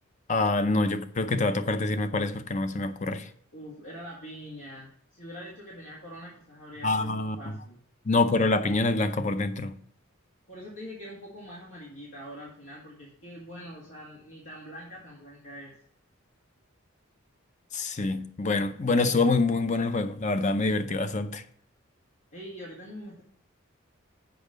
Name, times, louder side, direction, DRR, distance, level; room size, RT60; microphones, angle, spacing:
voice 1, 0.3-3.3 6.8-7.4 8.1-9.7 17.7-21.4, left 3 dB, 35° left, 0.6 m, -26 dB
voice 2, 3.5-7.8 10.5-15.7 22.3-23.2, equal, 75° left, 2.0 m, -44 dB
7.0 x 5.3 x 6.4 m
head